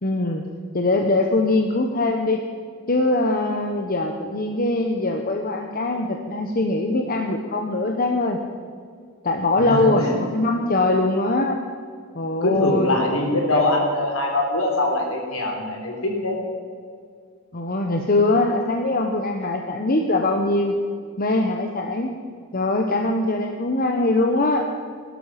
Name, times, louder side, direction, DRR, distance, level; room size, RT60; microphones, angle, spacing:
voice 1, 0.0-0.4 0.7-2.4 2.9-8.4 9.2-11.6 12.1-12.9 17.5-20.8 21.2-22.1 22.5-24.6, left 2 dB, 40° left, 3 dB, 1.0 m, -22 dB
voice 2, 9.6-10.2 12.4-16.4, left 2 dB, 65° left, 0 dB, 4.0 m, -23 dB
18.0 x 12.5 x 5.9 m, 2.2 s
head